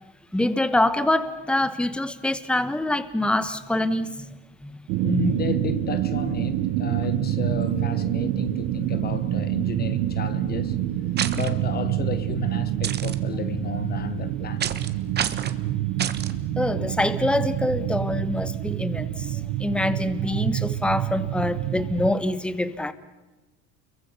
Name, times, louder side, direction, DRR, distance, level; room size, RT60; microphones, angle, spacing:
voice 1, 0.3-4.1 4.6-4.8 16.6-22.9, left 1 dB, 5° left, 1.2 m, -25 dB
sound 1, 4.9-22.1, right 13 dB, 85° right, 1.7 m, -27 dB
voice 2, 5.0-10.8 11.3-14.7, left 7 dB, 30° left, 1.0 m, -32 dB
sound 2, 11.2-11.5 12.8-13.1 14.6-14.9 15.1-15.5 16.0-16.3, right 9 dB, 30° right, 1.4 m, -28 dB
29.5 x 23.0 x 7.1 m
cardioid pair, 145°, 32 cm